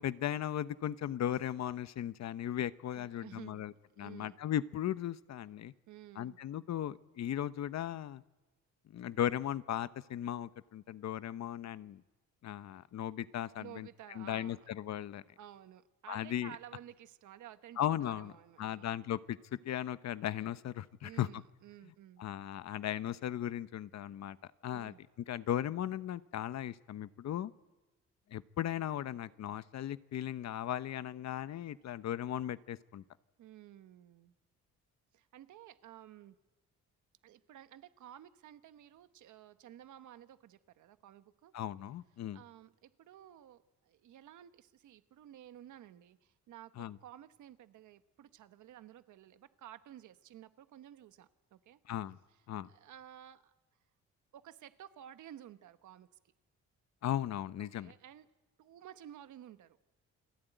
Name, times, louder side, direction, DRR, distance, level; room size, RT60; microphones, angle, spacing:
voice 1, 0.0-3.7 4.0-5.7 6.2-8.2 8.9-12.0 12.4-13.9 14.2-15.2 16.1-16.5 17.8-18.3 18.6-21.4 22.2-24.4 24.6-24.9 25.3-27.5 28.3-33.0 41.5-42.4 46.8-47.0 51.9-52.2 52.5-52.7 57.0-57.9, left 11 dB, 60° left, 14 dB, 0.9 m, -37 dB
voice 2, 2.9-4.4 5.9-6.4 13.6-14.7 15.4-18.9 21.0-22.3 24.7-25.0 33.4-34.4 35.1-36.4 37.2-41.5 42.3-51.8 52.3-52.4 52.7-53.5 54.3-56.2 57.6-58.3 58.6-59.8, right 11 dB, 75° right, 11 dB, 1.3 m, -54 dB
29.0 x 20.0 x 9.2 m, 1.1 s
cardioid pair, 90°, 30 cm